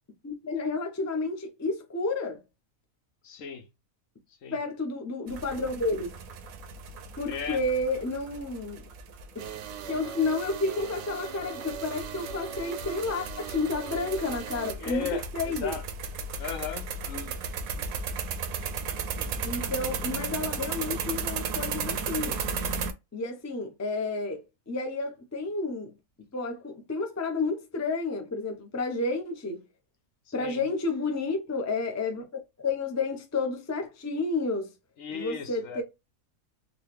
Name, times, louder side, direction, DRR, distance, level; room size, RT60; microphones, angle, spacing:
voice 1, 0.2-2.4 4.5-6.1 7.2-8.8 9.3-9.4 9.9-15.8 19.4-22.4 23.1-25.9 26.3-29.6 30.3-34.7 35.1-35.8, left 3 dB, 20° left, 0.4 m, -31 dB
voice 2, 3.2-3.7 4.4-4.6 7.3-7.6 14.8-15.8 16.4-17.4 17.8-17.9 19.1-19.3 30.4-30.6 35.0-35.8, left 7 dB, 75° left, 1.1 m, -36 dB
sound 1, 5.3-22.9, right 5 dB, 85° right, 1.1 m, -35 dB
sound 2, 9.4-14.7, right 8 dB, 65° right, 0.8 m, -39 dB
3.9 x 2.3 x 3.2 m
omnidirectional pair, 1.4 m